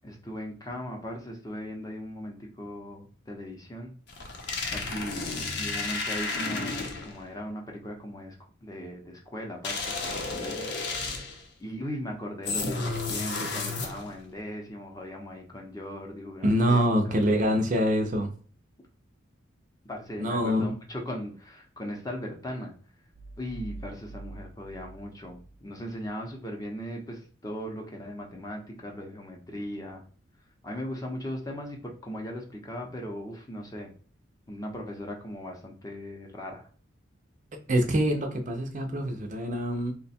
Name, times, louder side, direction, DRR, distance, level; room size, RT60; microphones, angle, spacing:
voice 1, 0.0-3.9 4.4-5.3 5.6-8.4 8.6-11.3 11.6-17.5 19.9-22.7 23.4-30.0 30.6-33.9 34.5-36.7, equal, 15° left, 1 dB, 0.7 m, -38 dB
sound 1, 4.1-7.2 9.6-11.5 12.5-14.2, left 3 dB, 55° left, 0.7 m, -32 dB
voice 2, 16.4-18.3 20.2-20.7 37.5-39.9, equal, 40° right, 4 dB, 0.5 m, -25 dB
sound 2, 23.1-26.1, right 2 dB, 90° right, 0.9 m, -45 dB
2.9 x 2.2 x 4.2 m, 0.43 s
head